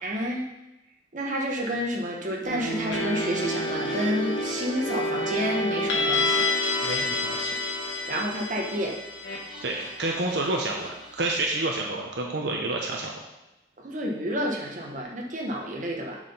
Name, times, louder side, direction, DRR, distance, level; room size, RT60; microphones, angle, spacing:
voice 1, 0.0-0.4 1.1-6.5 8.1-9.0 13.8-16.2, equal, 45° right, -1 dB, 1.3 m, -30 dB
sound 1, 2.4-11.3, left 2 dB, 85° left, 1.4 m, -29 dB
voice 2, 6.8-7.5 9.6-13.1, right 2 dB, 70° right, 0 dB, 1.0 m, -29 dB
7.3 x 5.0 x 5.5 m, 0.95 s
head